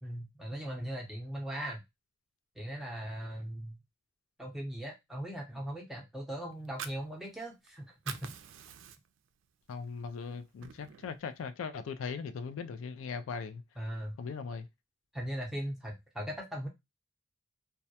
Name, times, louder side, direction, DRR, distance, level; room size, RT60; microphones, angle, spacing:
voice 1, 0.0-1.8 2.6-3.8 4.4-8.3 13.8-14.2 15.1-16.7, equal, ahead, 0.6 m, -39 dB
Fire, 6.5-7.7 7.9-9.3 9.7-9.8 10.2-11.2, right 8 dB, 75° right, 0.3 m, -45 dB
voice 2, 9.7-13.6 14.2-14.7, left 5 dB, 80° left, 0.3 m, -39 dB
2.2 x 2.1 x 2.7 m
head